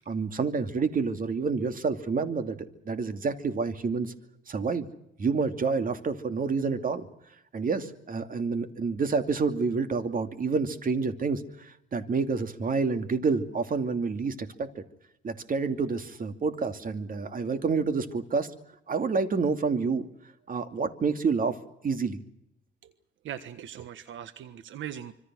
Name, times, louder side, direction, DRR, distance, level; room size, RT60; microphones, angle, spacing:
voice 1, 0.0-2.6 2.8-4.1 4.5-4.9 5.2-7.1 7.5-14.8 15.2-18.5 18.9-20.1 20.5-21.6 21.8-22.2, right 4 dB, 45° right, 8 dB, 2.7 m, -28 dB
voice 2, 23.2-25.1, right 10 dB, 75° right, 11 dB, 1.4 m, -40 dB
26.0 x 25.0 x 6.3 m, 0.78 s
cardioid pair, 90°, 20 cm